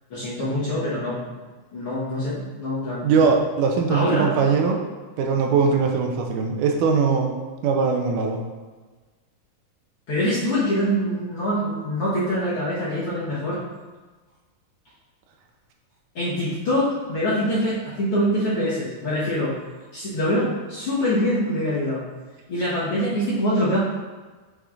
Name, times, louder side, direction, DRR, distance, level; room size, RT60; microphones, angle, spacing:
voice 1, 0.1-1.3 1.7-3.1 3.9-4.3 10.1-13.6 16.1-19.6 19.9-22.0 22.5-23.8, equal, 60° left, -9 dB, 1.5 m, -24 dB
voice 2, 3.0-4.8 5.2-7.3 7.6-8.4, right 5 dB, 80° right, 2 dB, 2.0 m, -21 dB
6.4 x 6.2 x 2.4 m, 1.3 s
omnidirectional pair, 3.9 m